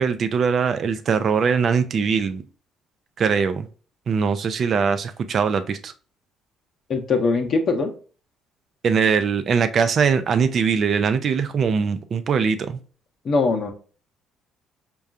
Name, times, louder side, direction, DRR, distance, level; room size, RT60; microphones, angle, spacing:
voice 1, 0.0-2.4 3.2-3.7 4.1-5.9 8.8-12.8, right 6 dB, 55° right, 0.5 m, -21 dB
voice 2, 6.9-7.9 13.2-13.7, left 4 dB, 55° left, 0.7 m, -21 dB
5.3 x 2.3 x 2.4 m
hypercardioid pair, 55°, 0 cm